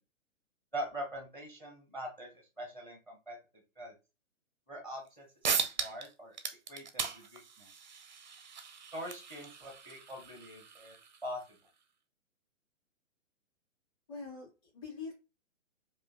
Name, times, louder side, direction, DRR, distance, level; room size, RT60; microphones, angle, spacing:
voice 1, 0.7-2.3 2.6-3.4 3.8-3.9 4.7-5.3 5.8-6.3 6.7-7.7 8.9-11.0 11.2-11.4, equal, 5° left, 2 dB, 0.9 m, -42 dB
sound 1, 5.1-5.2 5.4-6.1 6.3-11.5, right 6 dB, 35° right, 0.5 m, -38 dB
voice 2, 14.1-15.1, left 4 dB, 25° left, -4 dB, 2.3 m, -44 dB
4.7 x 2.5 x 2.8 m, 0.29 s
figure-of-eight pair, 125°, 40 cm